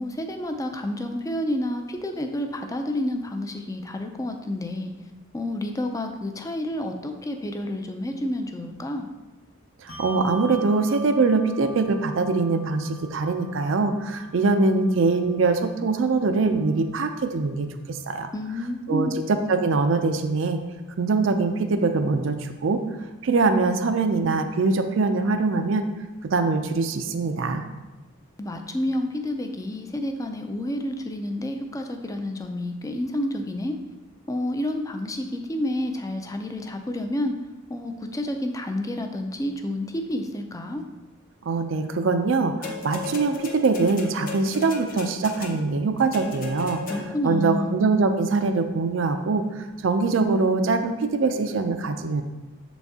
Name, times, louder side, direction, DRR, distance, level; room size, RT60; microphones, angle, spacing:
voice 1, 0.0-4.9 5.3-9.1 18.3-19.2 28.4-33.7 34.3-37.3 37.7-40.8 46.9-47.7, left 1 dB, 15° left, 5 dB, 0.4 m, -29 dB
voice 2, 9.8-18.3 18.9-19.1 19.5-20.6 21.0-22.8 23.2-25.8 26.2-27.7 41.5-46.8 47.2-52.2, right 3 dB, 65° right, 7 dB, 0.4 m, -23 dB
Bell, 9.9-16.7, right 1 dB, 75° left, 0.8 m, -44 dB
sound 1, 42.6-47.4 48.3-48.4, left 4 dB, 45° left, 0.8 m, -36 dB
6.7 x 4.1 x 3.5 m, 1.1 s
head